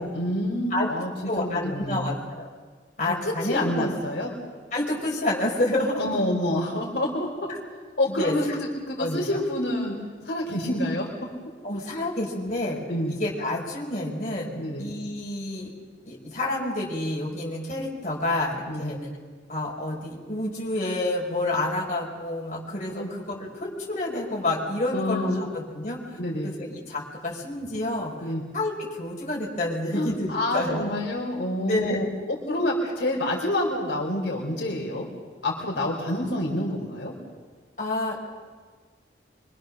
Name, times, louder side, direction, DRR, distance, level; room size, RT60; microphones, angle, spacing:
voice 1, 0.1-1.1 1.4-2.1 3.0-3.1 3.4-4.3 6.0-7.5 8.0-10.0 10.2-11.3 11.7-11.9 12.9-13.2 14.5-14.9 18.7-19.0 22.9-23.1 24.9-25.5 26.1-26.5 28.2-28.4 29.9-35.1 35.4-37.1, left 1 dB, 70° left, -1 dB, 4.1 m, -28 dB
voice 2, 1.3-2.5 3.0-4.0 4.7-6.0 8.2-8.6 9.0-9.4 11.6-14.5 14.8-15.7 16.0-19.0 19.5-26.0 26.4-31.0 31.7-32.0 37.8-38.2, left 1 dB, 40° left, -3 dB, 5.8 m, -29 dB
25.5 x 24.5 x 6.6 m, 1.5 s
head